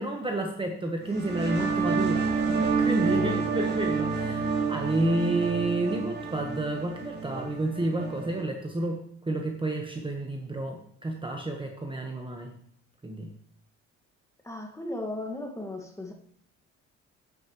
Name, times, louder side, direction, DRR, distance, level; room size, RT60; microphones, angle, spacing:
voice 1, 0.0-12.5 13.0-13.3, right 2 dB, 15° right, 3 dB, 1.1 m, -30 dB
sound 1, 1.0-8.4, right 5 dB, 35° right, 2.6 m, -29 dB
voice 2, 3.1-3.5 14.4-16.1, left 2 dB, 10° left, 2 dB, 1.8 m, -36 dB
9.2 x 8.8 x 3.0 m, 0.66 s
cardioid pair, 80°, 29 cm